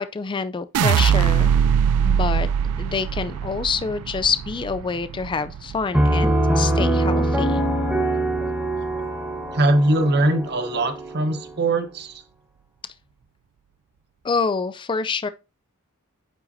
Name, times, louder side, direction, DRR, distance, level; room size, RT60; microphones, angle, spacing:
voice 1, 0.0-1.5 2.0-2.5 2.8-7.6 14.2-15.3, left 5 dB, 20° left, 0.3 m, -26 dB
sound 1, 0.7-6.9 7.3-7.9, right 8 dB, 85° right, 0.3 m, -22 dB
Piano, 5.9-11.5, right 1 dB, 5° right, 1.3 m, -23 dB
voice 2, 9.5-12.2, right 1 dB, 50° right, 1.0 m, -21 dB
9.0 x 5.7 x 2.6 m
head